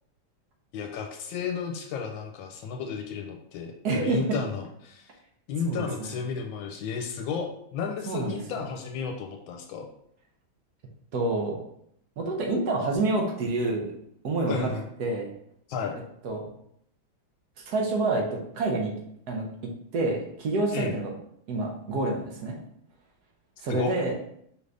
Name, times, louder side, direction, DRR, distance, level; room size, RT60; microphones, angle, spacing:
voice 1, 0.7-5.1 5.5-9.9 14.5-14.9 15.7-16.0 20.7-21.0 23.7-24.0, left 6 dB, 80° left, 2 dB, 1.3 m, -33 dB
voice 2, 3.8-4.2 5.6-6.1 8.1-8.4 11.1-11.6 12.2-13.9 14.2-14.7 15.0-15.3 16.2-16.4 17.6-18.9 19.3-19.5 19.9-21.1 21.5-22.6 23.6-24.2, right 2 dB, 65° right, 0 dB, 1.1 m, -27 dB
5.1 x 2.5 x 3.3 m, 0.71 s
omnidirectional pair, 2.2 m